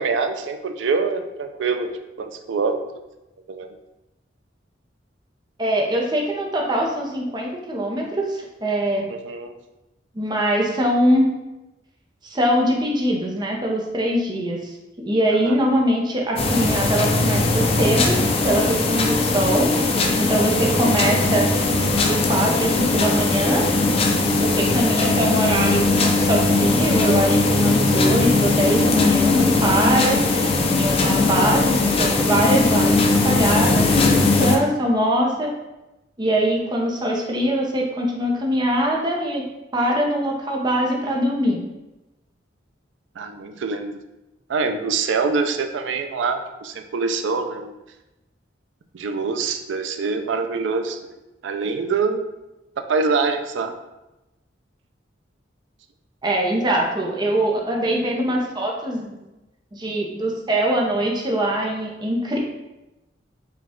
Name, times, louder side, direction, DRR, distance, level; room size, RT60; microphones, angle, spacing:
voice 1, 0.0-1.9 2.2-2.8 3.5-3.8 9.1-9.5 15.4-15.6 31.2-31.3 43.2-44.0 44.5-47.7 48.9-51.1 51.4-52.2 52.9-53.7, right 4 dB, 80° right, 6 dB, 0.4 m, -24 dB
voice 2, 5.6-9.0 10.1-11.2 12.2-14.7 15.1-18.2 18.4-19.7 20.2-21.5 21.9-23.6 24.4-30.2 30.7-35.5 36.2-39.4 39.7-41.6 56.2-59.2 59.7-62.4, right 1 dB, 25° right, -1 dB, 0.6 m, -22 dB
sound 1, 16.4-34.6, left 3 dB, 30° left, 0.4 m, -19 dB
5.0 x 2.3 x 3.6 m, 1.0 s
head